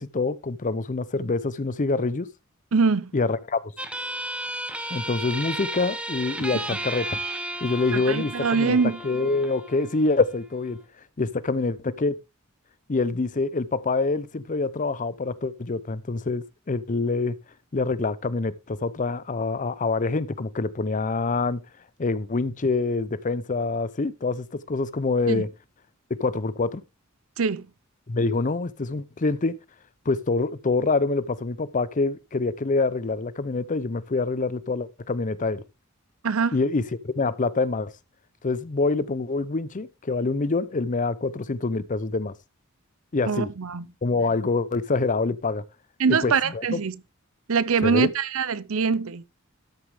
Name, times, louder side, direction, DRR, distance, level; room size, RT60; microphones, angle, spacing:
voice 1, 0.0-2.3 3.1-3.6 4.9-7.2 7.6-8.8 9.0-10.8 11.2-12.2 12.9-17.4 17.7-21.6 22.0-25.5 26.2-26.8 28.1-29.5 30.1-35.6 36.5-37.9 38.4-42.3 43.1-43.5 44.0-45.6 46.1-46.8 47.8-48.1, left 3 dB, 35° left, 0.6 m, -26 dB
voice 2, 2.7-3.1 7.9-9.0 25.3-25.4 27.4-27.7 36.2-36.6 43.3-43.9 46.0-47.0 47.5-49.2, right 5 dB, 75° right, 0.6 m, -23 dB
sound 1, 3.8-10.8, right 1 dB, 5° right, 0.9 m, -34 dB
13.0 x 6.6 x 3.5 m
head